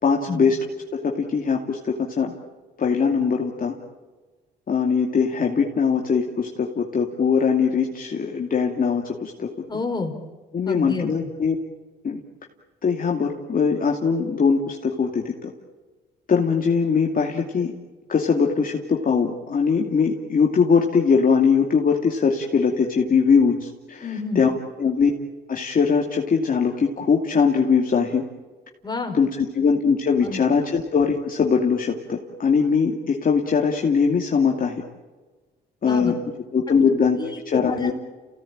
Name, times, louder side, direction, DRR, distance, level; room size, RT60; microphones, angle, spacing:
voice 1, 0.0-0.6 0.9-2.3 2.8-3.8 4.7-9.5 10.5-11.6 12.0-12.2 12.8-15.5 16.3-17.7 18.1-24.5 24.8-25.1 25.5-28.2 29.1-34.8 35.8-36.2 36.5-37.2 37.5-37.9, left 5 dB, 45° left, 0 dB, 2.6 m, -21 dB
voice 2, 9.7-10.1 10.7-11.1 24.0-24.4 28.8-29.2 30.2-30.4 35.8-36.1 36.7-36.9 37.2-37.9, left 3 dB, 20° left, 4 dB, 4.4 m, -29 dB
29.5 x 17.5 x 8.9 m, 1.3 s
cardioid pair, 90°, 20 cm